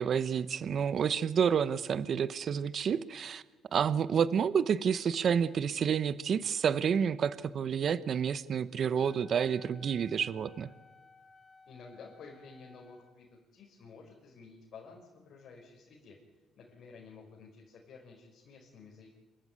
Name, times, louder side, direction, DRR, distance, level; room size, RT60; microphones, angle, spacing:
voice 1, 0.0-3.4 3.7-10.7, right 7 dB, 55° right, 14 dB, 0.9 m, -29 dB
Wind instrument woodwind instrument, 8.9-13.1, left 4 dB, 40° left, 4.1 m, -59 dB
voice 2, 11.7-16.2 16.6-19.1, left 4 dB, 65° left, -1 dB, 5.9 m, -52 dB
28.0 x 15.0 x 9.6 m, 1.2 s
cardioid pair, 85°, 0 cm